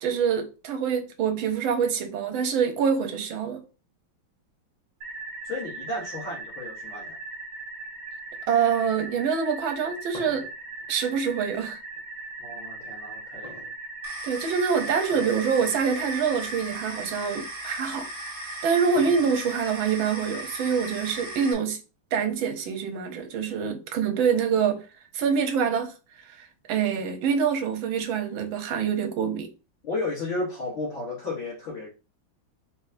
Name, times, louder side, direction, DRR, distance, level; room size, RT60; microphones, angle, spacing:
voice 1, 0.0-3.6 8.5-10.4 10.9-11.8 14.2-18.1 18.6-21.8 22.1-24.8 25.1-29.5, right 6 dB, 80° right, 1.5 m, -25 dB
sound 1, 5.0-16.6, right 3 dB, 55° right, 1.2 m, -39 dB
voice 2, 5.4-7.2 12.4-13.6 29.8-31.9, left 2 dB, 80° left, 2.2 m, -33 dB
sound 2, 9.7-12.1 13.4-14.3 15.0-15.5 15.8-15.9 16.7-16.8 18.2-19.7, left 2 dB, 25° left, 1.2 m, -45 dB
sound 3, 14.0-21.5, right 1 dB, 20° right, 0.6 m, -37 dB
4.4 x 3.5 x 2.6 m
omnidirectional pair, 2.2 m